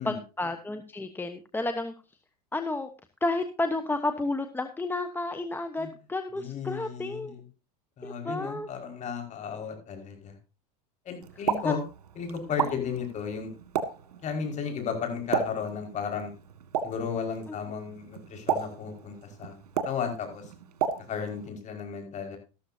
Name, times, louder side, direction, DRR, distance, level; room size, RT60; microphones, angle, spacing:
voice 1, 0.0-1.9 2.5-2.9 3.2-7.4 8.0-8.7 11.6-11.7, left 2 dB, 10° left, 8 dB, 1.1 m, -31 dB
voice 2, 6.4-7.4 8.0-10.3 11.1-11.8 12.2-13.5 14.2-16.3 16.8-19.6 19.8-20.5 21.1-22.4, left 6 dB, 40° left, 4 dB, 5.2 m, -34 dB
Explosion, 11.2-21.5, right 8 dB, 90° right, 1.9 m, -35 dB
13.5 x 13.0 x 2.7 m, 0.31 s
supercardioid pair, 110°, 20 cm